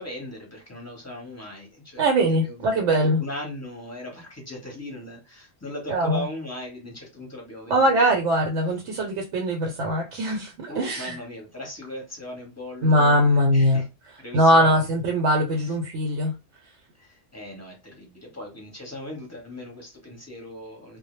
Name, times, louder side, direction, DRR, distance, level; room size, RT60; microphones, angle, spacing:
voice 1, 0.0-7.9 10.7-13.9 14.2-14.9 15.5-15.8 17.0-21.0, left 1 dB, 15° left, 0.8 m, -38 dB
voice 2, 2.0-3.2 5.9-6.2 7.7-11.1 12.8-13.8 14.3-16.3, equal, 75° right, 0.9 m, -21 dB
2.1 x 2.0 x 3.0 m
omnidirectional pair, 1.3 m